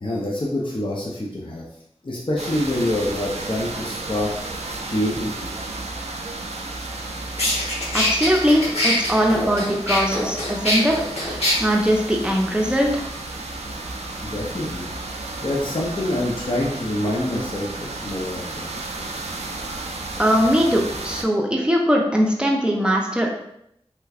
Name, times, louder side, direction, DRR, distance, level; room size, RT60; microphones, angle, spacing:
voice 1, 0.0-1.6 2.0-4.3 4.8-5.5 14.2-14.9 15.4-18.7, left 1 dB, 50° left, -3 dB, 0.6 m, -26 dB
sound 1, 2.4-21.2, right 2 dB, 85° right, 0.4 m, -33 dB
sound 2, 6.9-7.0 7.4-11.5, left 1 dB, 70° left, 1.1 m, -23 dB
voice 2, 7.9-10.9 11.2-13.1 20.2-23.3, equal, 10° right, 0 dB, 0.6 m, -20 dB
3.3 x 3.0 x 2.4 m, 0.75 s
wide cardioid pair, 50°, 11 cm